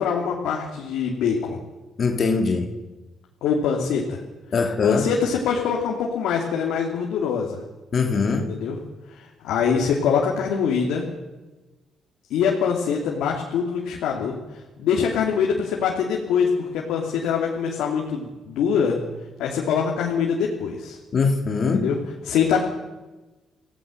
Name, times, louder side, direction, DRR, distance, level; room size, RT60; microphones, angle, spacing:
voice 1, 0.0-1.6 3.4-4.2 4.8-7.6 8.5-8.8 9.1-11.1 12.3-14.4 14.8-19.0 19.4-21.0 21.7-22.0 22.2-22.6, left 6 dB, 90° left, -1 dB, 2.8 m, -23 dB
voice 2, 2.0-2.7 4.5-5.1 7.9-8.5 21.1-21.9, left 4 dB, 50° left, 4 dB, 2.4 m, -22 dB
26.5 x 16.5 x 6.6 m, 1.1 s
cardioid pair, 90°, 0 cm